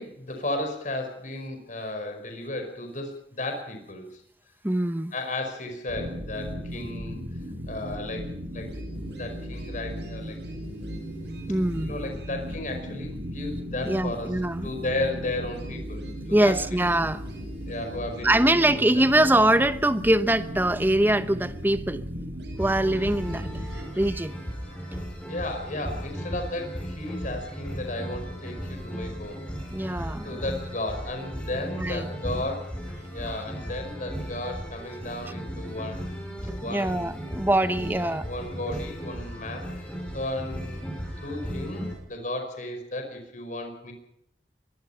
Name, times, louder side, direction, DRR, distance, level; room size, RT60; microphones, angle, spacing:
voice 1, 0.0-4.2 5.1-7.3 7.7-8.7 9.1-10.4 11.8-14.3 14.6-16.6 17.7-19.3 24.7-24.8 25.3-29.5 30.0-32.7 33.1-36.0 36.6-37.2 37.7-43.9, left 2 dB, 45° left, 5 dB, 5.0 m, -34 dB
voice 2, 4.6-5.1 11.5-11.9 13.8-14.7 16.3-17.2 18.2-22.1 22.6-24.4 29.7-30.4 31.7-32.1 36.5-38.3, right 1 dB, 10° right, 12 dB, 0.9 m, -23 dB
sound 1, 5.9-23.8, equal, 70° right, 7.9 m, -36 dB
sound 2, 22.6-41.9, equal, 5° left, 6.5 m, -36 dB
23.5 x 21.5 x 5.7 m, 0.72 s
head